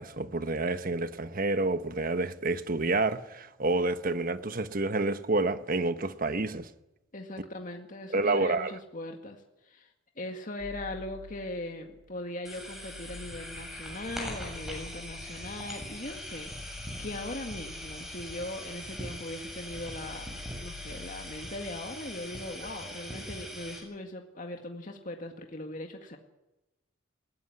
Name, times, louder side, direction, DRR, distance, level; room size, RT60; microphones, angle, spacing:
voice 1, 0.0-6.7 8.1-8.7, right 2 dB, 45° right, 1.2 m, -29 dB
voice 2, 7.1-9.9 10.2-26.2, left 1 dB, 45° left, 2.0 m, -40 dB
sound 1, 10.6-12.0 12.4-19.0 19.3-21.6, left 4 dB, 80° right, 5.5 m, -49 dB
sound 2, 12.4-23.8, equal, ahead, 7.6 m, -41 dB
20.5 x 17.5 x 9.8 m
head